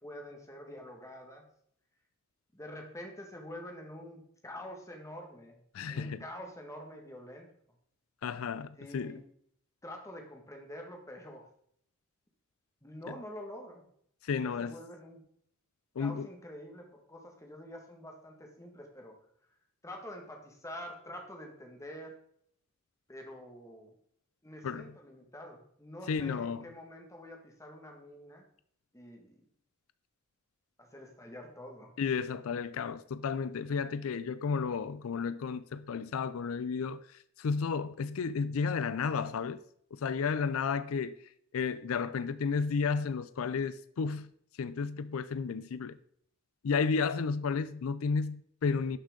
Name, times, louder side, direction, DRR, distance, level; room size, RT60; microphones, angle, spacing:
voice 1, 0.0-1.5 2.5-5.6 5.9-7.5 8.7-9.2 9.8-11.5 12.8-13.8 14.4-15.2 16.0-19.2 19.8-22.1 23.1-23.9 24.4-28.5 28.9-29.4 30.8-31.9 33.6-34.0, left 1 dB, 15° left, 1.7 m, -46 dB
voice 2, 5.7-6.2 8.2-9.2 14.2-14.7 16.0-16.3 24.6-24.9 26.1-26.6 32.0-37.0 37.4-39.6 39.9-41.1 41.5-44.3 44.6-46.0 46.6-49.0, left 5 dB, 75° left, 0.4 m, -32 dB
11.5 x 6.4 x 3.8 m
head